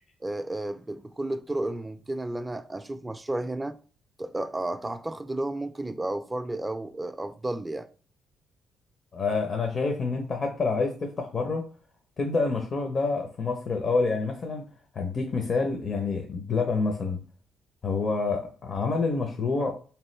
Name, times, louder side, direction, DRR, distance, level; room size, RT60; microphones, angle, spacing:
voice 1, 0.2-3.8 4.2-7.9, right 1 dB, 15° right, 0.3 m, -32 dB
voice 2, 9.1-11.6 12.2-14.7 14.9-17.2 17.8-19.8, left 4 dB, 45° left, 0.6 m, -27 dB
3.7 x 3.0 x 3.1 m
cardioid pair, 90°, 0 cm